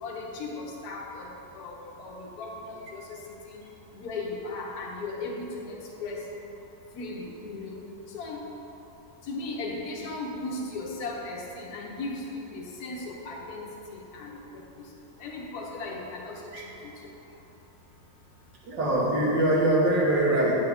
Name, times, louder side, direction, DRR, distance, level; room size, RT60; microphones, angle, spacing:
voice 1, 0.0-3.2 3.5-3.6 3.9-6.3 6.9-7.8 8.1-8.4 9.2-14.9 15.2-16.5 16.8-16.9, left 3 dB, 60° left, -1 dB, 1.2 m, -37 dB
voice 2, 18.6-20.6, right 1 dB, 60° right, -5 dB, 1.8 m, -23 dB
9.0 x 4.7 x 3.5 m, 3.0 s
omnidirectional pair, 2.2 m